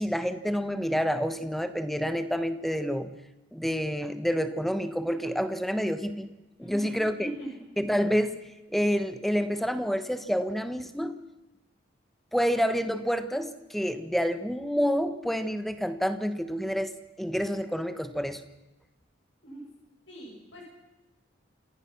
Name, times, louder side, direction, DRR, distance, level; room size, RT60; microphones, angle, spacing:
voice 1, 0.0-3.1 3.5-6.3 6.6-7.3 7.8-8.4 8.7-11.2 12.3-18.4, equal, ahead, 10 dB, 1.2 m, -28 dB
voice 2, 6.6-7.6 19.4-19.6 20.1-20.7, right 1 dB, 80° left, -2 dB, 7.7 m, -40 dB
28.0 x 16.0 x 6.0 m, 1.0 s
head